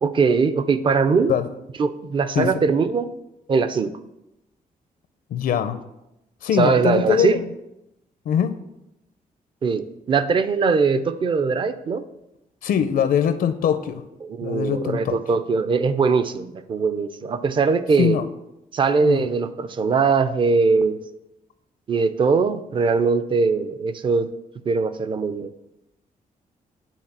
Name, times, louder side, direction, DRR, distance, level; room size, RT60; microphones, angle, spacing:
voice 1, 0.0-1.3 1.8-3.1 3.5-3.9 6.6-7.4 9.6-12.0 14.2-18.2 18.7-21.0 21.9-24.3 24.7-25.5, right 5 dB, 35° right, 11 dB, 0.5 m, -21 dB
voice 2, 5.3-5.8 6.4-7.4 8.3-8.5 12.6-14.0 14.4-15.2 18.0-18.2 19.0-19.2, left 8 dB, 80° left, 11 dB, 0.6 m, -22 dB
9.1 x 4.0 x 7.3 m, 0.88 s
wide cardioid pair, 175°, 15 cm